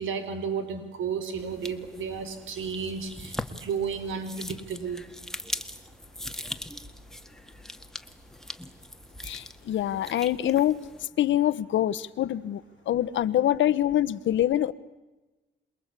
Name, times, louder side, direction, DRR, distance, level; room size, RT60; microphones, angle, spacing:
voice 1, 0.0-5.0, right 6 dB, 80° right, 9 dB, 4.3 m, -33 dB
sound 1, 1.4-11.1, left 1 dB, ahead, 1.8 m, -41 dB
voice 2, 9.2-10.8 11.2-12.6 12.9-14.7, left 12 dB, 75° left, 15 dB, 1.2 m, -25 dB
27.5 x 22.0 x 8.4 m, 1.1 s
cardioid pair, 90°, 20 cm